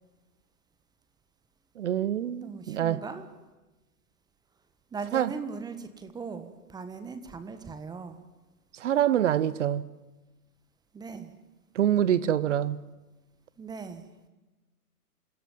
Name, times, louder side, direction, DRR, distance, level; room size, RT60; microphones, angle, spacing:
voice 1, 1.8-3.0 5.1-5.3 8.8-9.9 11.7-12.8, right 10 dB, 50° right, 1.2 m, -25 dB
voice 2, 2.4-3.3 4.9-8.2 10.9-11.3 13.6-14.1, right 5 dB, 10° right, 1.3 m, -39 dB
27.5 x 17.0 x 9.1 m
figure-of-eight pair, 130°, 48 cm